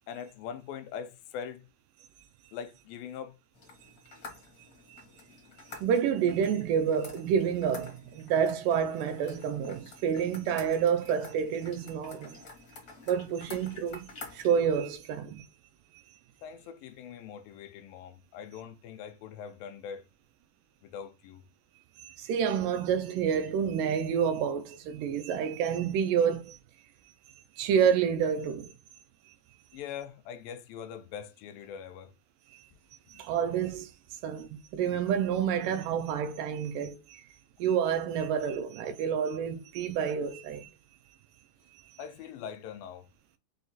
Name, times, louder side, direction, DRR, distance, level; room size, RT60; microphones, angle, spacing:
voice 1, 0.1-1.7 2.5-3.4 5.5-5.6 16.4-20.1 20.8-21.4 29.7-32.1 33.1-33.3 42.0-43.1, left 8 dB, 85° left, 2.2 m, -42 dB
sound 1, 3.5-14.5, left 3 dB, 65° left, 0.9 m, -49 dB
voice 2, 5.8-12.4 13.1-15.5 22.0-26.6 27.6-28.7 33.1-33.9 34.2-37.2 37.6-40.7, right 7 dB, 80° right, 2.0 m, -29 dB
6.6 x 2.3 x 2.6 m
omnidirectional pair, 4.1 m